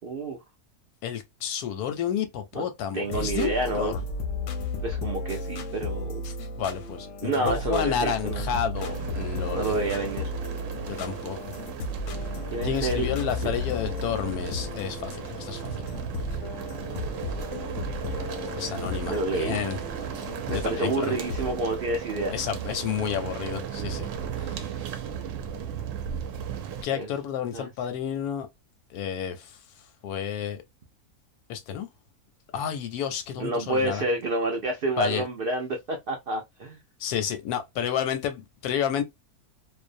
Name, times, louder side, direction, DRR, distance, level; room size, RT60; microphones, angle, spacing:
voice 1, 0.0-0.4 2.5-2.7 2.9-3.9 4.8-6.2 7.2-8.5 9.5-10.3 12.5-13.5 19.1-19.6 20.5-22.3 26.9-27.1 27.5-27.7 33.4-36.8, right 2 dB, 85° right, 0.4 m, -29 dB
voice 2, 1.0-4.0 6.2-9.7 10.8-11.5 12.6-15.9 18.6-20.1 20.5-21.1 22.3-24.1 24.4-24.7 26.8-28.5 28.9-29.6 30.0-30.6 31.5-31.9 32.5-34.0 35.0-35.2 37.0-39.0, left 8 dB, 90° left, 1.1 m, -31 dB
sound 1, 3.0-21.6, left 2 dB, 65° left, 0.8 m, -34 dB
sound 2, 8.7-26.8, right 8 dB, 70° right, 0.8 m, -36 dB
2.6 x 2.0 x 2.4 m
omnidirectional pair, 1.6 m